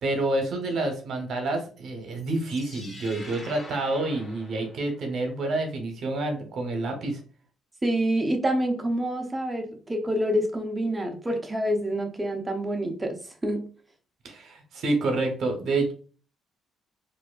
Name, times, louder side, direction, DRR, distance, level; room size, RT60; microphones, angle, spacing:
voice 1, 0.0-7.2 14.2-15.9, right 2 dB, 65° right, 4 dB, 0.9 m, -28 dB
sound 1, 2.1-5.3, left 1 dB, 30° left, 1.6 m, -46 dB
voice 2, 7.8-13.6, right 1 dB, 15° right, 3 dB, 0.8 m, -27 dB
4.2 x 2.6 x 2.4 m, 0.40 s
cardioid pair, 90°, 0 cm